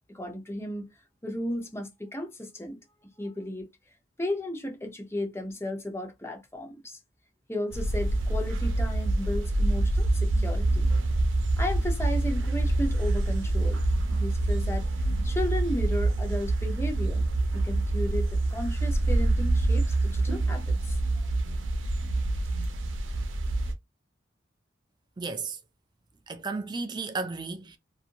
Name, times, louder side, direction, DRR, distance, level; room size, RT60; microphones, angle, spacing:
voice 1, 0.1-0.9 1.2-2.8 3.2-3.7 4.2-7.0 7.5-10.9 11.6-13.8 14.1-14.9 15.2-17.2 17.5-21.0, left 1 dB, 15° left, 0.7 m, -34 dB
sound 1, 7.7-23.7, right 2 dB, 90° right, 0.7 m, -26 dB
voice 2, 25.2-25.6 26.3-27.8, right 4 dB, 25° right, 0.4 m, -33 dB
2.8 x 2.5 x 2.5 m
head